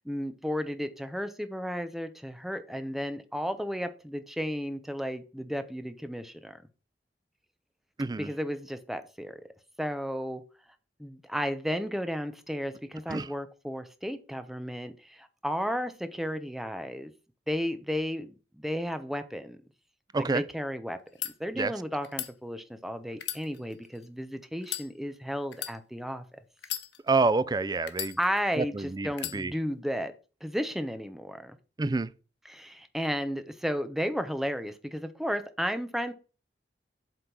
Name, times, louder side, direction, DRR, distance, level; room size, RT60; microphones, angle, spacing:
voice 1, 0.0-6.6 8.2-9.4 9.8-10.4 11.0-17.1 17.5-19.6 20.2-21.0 21.4-26.2 28.2-30.1 30.4-31.6 32.4-36.1, equal, ahead, 0.8 m, -33 dB
voice 2, 8.0-8.3 13.1-13.3 20.1-20.4 21.6-21.7 27.1-28.2 28.6-29.1 29.3-29.5 31.8-32.1, right 3 dB, 25° right, 0.4 m, -27 dB
sound 1, 21.0-21.3 22.0-22.3 23.1-24.1 24.6-24.9 25.5-25.8 26.6-27.3 27.9-28.6 29.1-29.4, left 13 dB, 85° left, 1.0 m, -36 dB
8.0 x 3.7 x 6.0 m
head